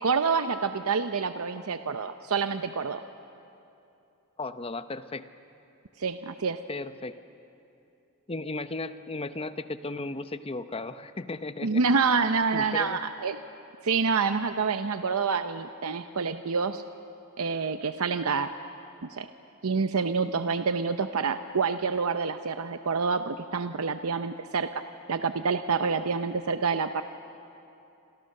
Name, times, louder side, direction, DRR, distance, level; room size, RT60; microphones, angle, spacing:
voice 1, 0.0-3.0 6.0-6.6 11.6-13.4 13.8-16.8 17.4-18.5 19.0-19.3 19.6-24.8 25.1-27.0, right 5 dB, 75° right, 9 dB, 0.7 m, -27 dB
voice 2, 4.4-5.2 6.7-7.1 8.3-13.0, left 2 dB, 25° left, 11 dB, 0.8 m, -35 dB
29.0 x 26.0 x 6.6 m, 2.7 s
head